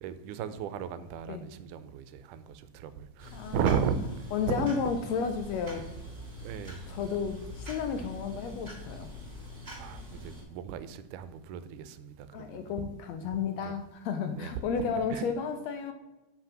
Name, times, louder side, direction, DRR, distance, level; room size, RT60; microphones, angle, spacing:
voice 1, 0.0-4.0 4.5-4.7 5.7-5.9 6.4-6.8 9.8-12.3 12.5-12.6 13.6-13.7 14.4-14.5 15.1-15.2, right 8 dB, 85° right, 13 dB, 2.1 m, -34 dB
sound 1, 3.2-10.4, left 1 dB, 15° right, 2.2 m, -44 dB
voice 2, 3.3-3.9 4.3-5.9 6.9-9.1 12.3-15.9, left 6 dB, 75° left, 7 dB, 1.7 m, -32 dB
7.7 x 5.9 x 5.8 m, 1.0 s
omnidirectional pair, 3.6 m